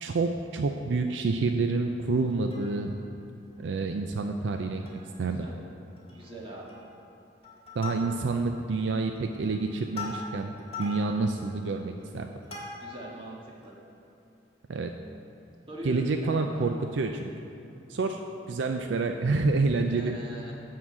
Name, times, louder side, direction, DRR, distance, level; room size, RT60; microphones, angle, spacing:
voice 1, 0.0-3.0 3.6-4.8 5.2-5.5 7.8-12.3 14.7-14.9 15.8-17.3 17.9-18.2 18.5-20.2, right 3 dB, 70° right, 5 dB, 0.4 m, -28 dB
Plucked string instrument, 2.3-3.1 3.5-3.6 3.9-4.1 4.5-5.2 5.5-5.6 6.0-6.3 6.7-7.1 7.4-8.5 9.0-13.1 13.6-13.7, left 3 dB, 35° left, 1.7 m, -42 dB
voice 2, 5.2-5.5 6.1-6.7 12.8-13.7 15.7-16.7 19.8-20.5, right 1 dB, 30° right, -5 dB, 1.7 m, -42 dB
11.0 x 3.9 x 7.2 m, 2.8 s
head